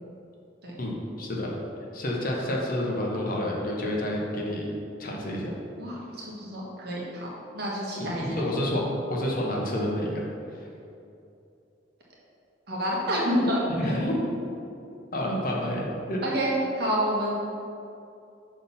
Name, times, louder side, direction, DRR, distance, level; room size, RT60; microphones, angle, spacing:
voice 1, 0.8-1.5 1.9-4.7 5.0-5.5 8.0-10.2 13.7-14.2 15.1-16.2, left 1 dB, 50° left, -2 dB, 1.0 m, -29 dB
voice 2, 5.7-8.4 12.7-13.9 16.2-17.3, equal, 60° right, -5 dB, 1.5 m, -28 dB
6.1 x 4.1 x 5.6 m, 2.6 s
head